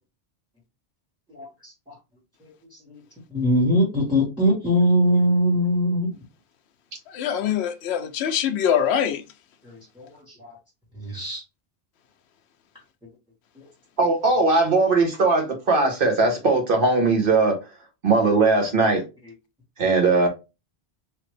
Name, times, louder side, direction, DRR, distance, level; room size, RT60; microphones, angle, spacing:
voice 1, 3.3-6.1 11.1-11.4, equal, 5° right, 1.5 m, -20 dB
voice 2, 7.2-9.2, left 9 dB, 70° left, 0.8 m, -23 dB
voice 3, 14.0-17.6 18.0-19.0 19.8-20.3, right 3 dB, 50° right, 1.3 m, -19 dB
3.2 x 2.8 x 3.2 m
omnidirectional pair, 1.2 m